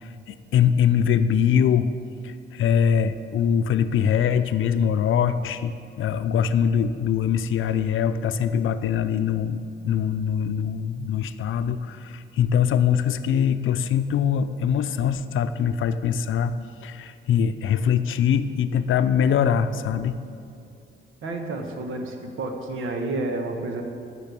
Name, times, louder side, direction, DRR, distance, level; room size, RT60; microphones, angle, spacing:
voice 1, 0.0-1.9 2.2-16.5 16.8-20.2, left 8 dB, 80° left, 11 dB, 0.6 m, -23 dB
voice 2, 21.2-23.8, right 2 dB, 90° right, 4 dB, 1.4 m, -30 dB
10.5 x 6.8 x 8.3 m, 2.5 s
wide cardioid pair, 175°, 20 cm